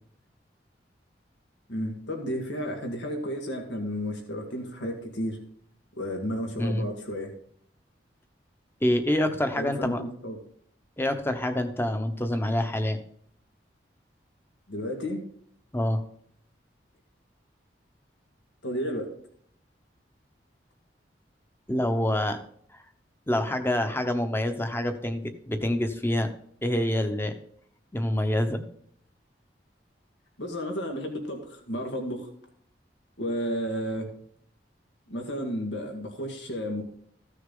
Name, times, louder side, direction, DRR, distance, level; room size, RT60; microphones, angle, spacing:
voice 1, 1.7-5.4 6.0-7.3 9.6-10.4 14.7-15.2 18.6-19.1 30.4-32.3 33.2-34.1 35.1-36.8, equal, 90° left, 2 dB, 1.9 m, -32 dB
voice 2, 8.8-10.0 11.0-13.0 15.7-16.0 21.7-22.4 22.7-22.8 23.3-26.3 26.6-27.3 27.9-28.6, left 1 dB, 15° left, 7 dB, 1.0 m, -26 dB
15.0 x 6.5 x 3.9 m, 0.63 s
head